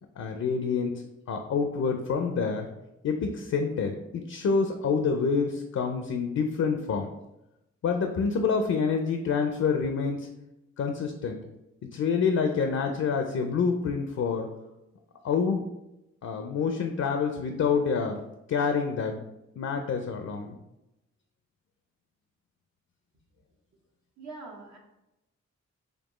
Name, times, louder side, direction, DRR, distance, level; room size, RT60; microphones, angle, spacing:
voice 1, 0.2-2.7 3.0-7.1 7.8-10.3 10.8-11.4 11.8-14.5 15.2-15.7 16.2-18.2 18.5-19.2 19.6-20.6, left 5 dB, 65° left, 5 dB, 0.5 m, -27 dB
voice 2, 24.2-24.8, right 3 dB, 70° right, -2 dB, 1.0 m, -43 dB
4.3 x 2.7 x 3.0 m, 0.91 s
cardioid pair, 70°, 29 cm